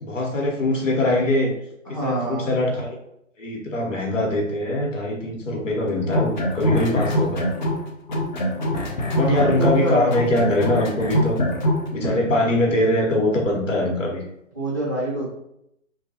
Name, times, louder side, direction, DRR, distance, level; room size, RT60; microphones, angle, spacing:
voice 1, 0.0-1.5 2.0-3.0 3.4-7.4 9.1-11.4 11.9-14.2, left 1 dB, 75° left, -1 dB, 1.0 m, -22 dB
voice 2, 1.8-2.5 9.2-10.1 12.0-12.3 14.5-15.3, right 1 dB, 15° right, -9 dB, 0.4 m, -26 dB
sound 1, 6.0-7.8 8.1-11.8, equal, 35° left, 0.5 m, -23 dB
2.6 x 2.3 x 2.8 m, 0.78 s
figure-of-eight pair, 135°, 39 cm